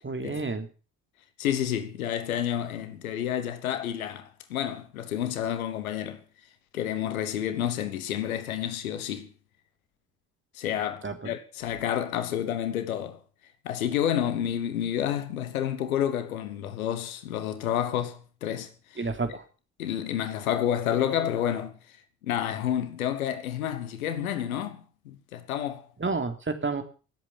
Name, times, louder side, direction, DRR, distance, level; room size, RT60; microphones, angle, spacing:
voice 1, 0.0-0.7 11.0-11.3 19.0-19.4 26.0-26.8, right 3 dB, 30° right, 3.1 m, -30 dB
voice 2, 1.4-6.2 6.7-9.3 10.5-13.2 13.6-19.0 19.8-21.8 22.2-25.8, left 10 dB, 85° left, 1.3 m, -30 dB
18.0 x 8.2 x 7.3 m
hypercardioid pair, 45°, 41 cm